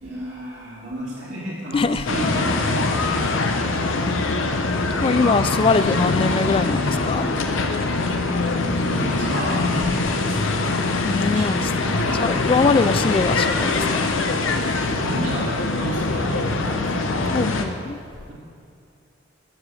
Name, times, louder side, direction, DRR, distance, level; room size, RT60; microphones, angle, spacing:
voice 1, 0.0-3.8 5.1-5.4 8.7-10.8 11.3-11.5 12.1-12.2 12.6-12.9 15.0-17.3, right 1 dB, 65° right, -8 dB, 2.4 m, -32 dB
voice 2, 1.7-2.1 5.0-7.3 10.8-14.1 17.3-18.0, left 4 dB, 25° left, 13 dB, 0.3 m, -22 dB
sound 1, 2.1-17.7, left 3 dB, 75° left, 0.9 m, -23 dB
13.5 x 5.0 x 6.2 m, 2.5 s
head